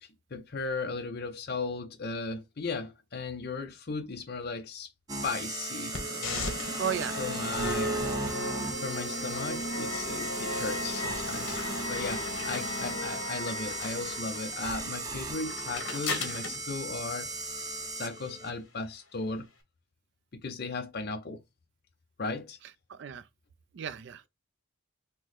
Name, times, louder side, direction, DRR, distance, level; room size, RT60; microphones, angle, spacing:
voice 1, 0.0-4.9 5.2-6.8 7.2-8.1 8.8-17.3 18.0-19.5 20.3-21.4 22.2-22.6, left 3 dB, 50° left, 0.6 m, -36 dB
sound 1, 5.1-18.5, right 2 dB, 20° right, 0.7 m, -37 dB
sound 2, 5.9-17.9, left 1 dB, 65° left, 1.3 m, -36 dB
voice 2, 6.6-7.2 22.9-23.3 23.7-24.3, right 8 dB, 55° right, 0.3 m, -34 dB
5.8 x 2.1 x 3.1 m
head